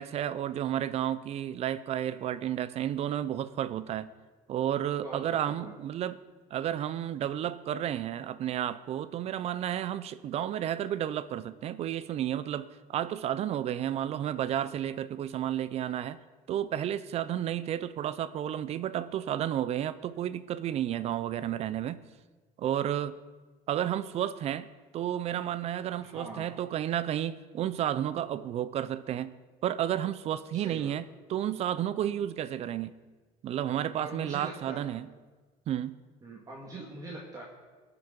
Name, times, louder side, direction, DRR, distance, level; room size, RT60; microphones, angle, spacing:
voice 1, 0.0-4.1 4.5-6.2 6.5-16.2 16.5-22.0 22.6-23.2 23.7-24.7 24.9-29.3 29.6-32.9 33.4-35.1 35.7-36.0, right 11 dB, 45° right, 15 dB, 0.5 m, -32 dB
voice 2, 26.0-26.5 30.5-30.9 33.9-34.8 36.2-37.4, right 2 dB, 25° right, -3 dB, 2.0 m, -42 dB
20.5 x 6.9 x 5.2 m, 1.3 s
cardioid pair, 145°, 14 cm